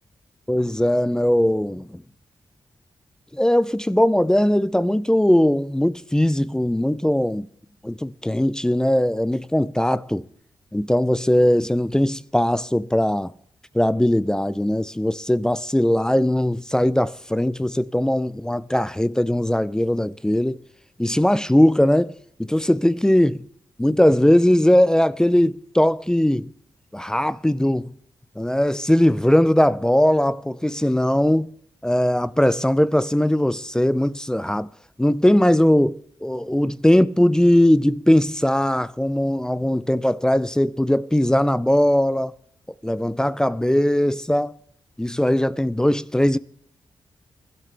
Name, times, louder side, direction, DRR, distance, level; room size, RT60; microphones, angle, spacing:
voice 1, 0.5-2.0 3.3-7.5 7.8-10.2 10.7-13.3 13.7-20.6 21.0-22.1 22.5-23.4 23.8-26.5 26.9-27.9 28.4-31.5 31.8-34.7 35.0-42.3 42.8-44.5 45.0-46.4, left 1 dB, 10° left, 0.4 m, -19 dB
21.5 x 12.0 x 3.4 m
cardioid pair, 75°, 9 cm